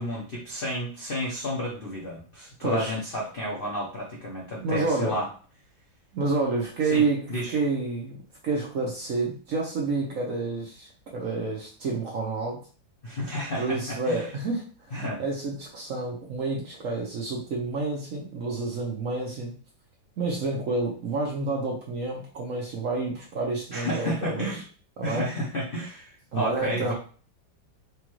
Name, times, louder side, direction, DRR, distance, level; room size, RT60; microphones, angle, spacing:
voice 1, 0.0-5.3 6.8-7.5 13.0-14.3 14.9-15.2 23.7-24.6 25.0-26.9, left 1 dB, 70° left, -3 dB, 0.5 m, -31 dB
voice 2, 2.6-2.9 4.6-5.1 6.1-8.2 8.4-12.6 13.6-14.6 15.2-19.5 20.2-24.5 25.0-25.3 26.3-26.9, right 3 dB, 60° right, -1 dB, 0.9 m, -29 dB
4.9 x 2.3 x 3.0 m, 0.40 s
omnidirectional pair, 2.1 m